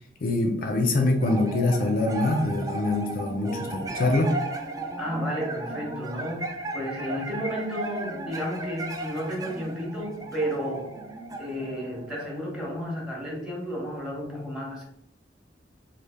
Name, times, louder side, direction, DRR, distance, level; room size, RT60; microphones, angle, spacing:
voice 1, 0.2-4.4, left 2 dB, 55° left, 3 dB, 0.4 m, -24 dB
sound 1, 1.2-12.8, right 2 dB, 20° right, 0.4 m, -35 dB
voice 2, 5.0-10.9 11.4-14.8, equal, 5° right, -3 dB, 1.0 m, -32 dB
3.2 x 2.4 x 3.5 m, 0.75 s
head